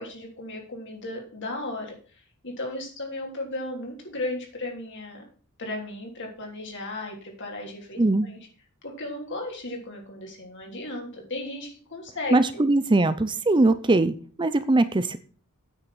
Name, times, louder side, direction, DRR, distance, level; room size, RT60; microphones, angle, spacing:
voice 1, 0.0-2.0 2.4-5.2 5.6-8.4 8.8-12.3, left 2 dB, 55° left, 1 dB, 3.4 m, -35 dB
voice 2, 12.3-15.2, right 2 dB, 20° right, 12 dB, 0.6 m, -21 dB
9.1 x 6.4 x 7.1 m, 0.42 s
head